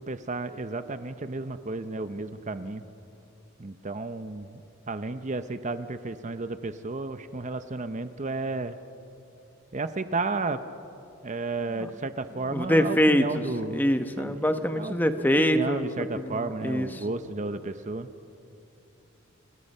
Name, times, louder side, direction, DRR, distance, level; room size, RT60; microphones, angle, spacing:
voice 1, 0.0-2.8 3.6-4.6 4.9-8.8 9.7-10.6 11.2-13.9 14.2-14.9 15.4-18.1, right 3 dB, 35° right, 10 dB, 0.7 m, -32 dB
voice 2, 12.5-13.4 13.7-15.9 16.2-16.9, equal, 10° left, 8 dB, 1.0 m, -24 dB
29.5 x 29.5 x 5.5 m, 2.8 s
head